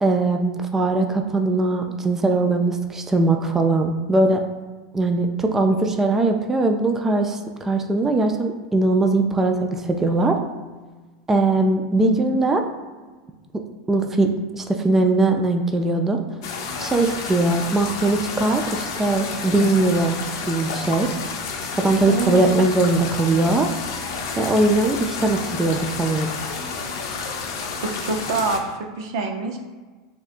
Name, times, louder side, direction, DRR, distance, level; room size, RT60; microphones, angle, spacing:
voice 1, 0.0-4.4 4.9-10.4 11.3-12.6 13.9-16.2 16.8-20.2 20.5-21.1 21.8-23.7 24.4-26.3, right 2 dB, 15° right, 4 dB, 0.4 m, -20 dB
sound 1, 16.4-28.6, left 5 dB, 80° left, 0.6 m, -30 dB
voice 2, 22.1-22.6 27.8-29.6, right 3 dB, 75° right, 3 dB, 0.6 m, -26 dB
6.9 x 2.3 x 2.5 m, 1.3 s
hypercardioid pair, 110°, 2 cm